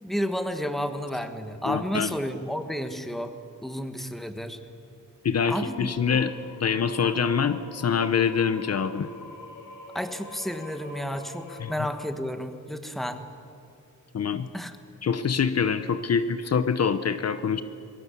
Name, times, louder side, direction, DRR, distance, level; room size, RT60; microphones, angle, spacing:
voice 1, 0.0-3.3 3.6-4.6 5.5-6.2 9.9-13.2 14.5-14.8, equal, ahead, 8 dB, 1.5 m, -31 dB
voice 2, 1.7-2.1 5.2-6.3 6.6-9.1 11.6-11.7 14.1-14.5 15.0-17.6, left 6 dB, 50° left, 12 dB, 0.9 m, -25 dB
sound 1, 5.4-11.8, left 3 dB, 75° left, 4.7 m, -45 dB
26.5 x 22.0 x 8.4 m, 2.6 s
wide cardioid pair, 175°, 32 cm